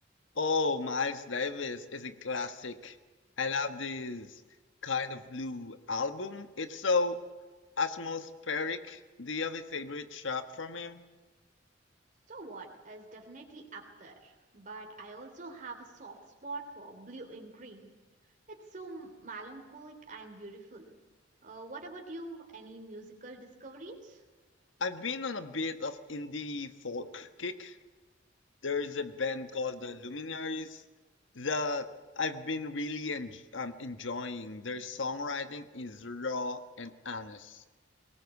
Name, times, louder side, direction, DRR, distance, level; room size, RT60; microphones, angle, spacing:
voice 1, 0.3-3.0 3.4-4.4 4.8-7.2 7.8-11.0 24.8-27.8 28.6-30.8 31.3-31.9 32.2-37.6, left 4 dB, 85° left, 9 dB, 1.4 m, -34 dB
voice 2, 12.3-17.9 18.5-20.8 21.4-24.2, right 3 dB, 45° right, 2 dB, 3.3 m, -45 dB
22.5 x 19.0 x 8.3 m, 1.3 s
head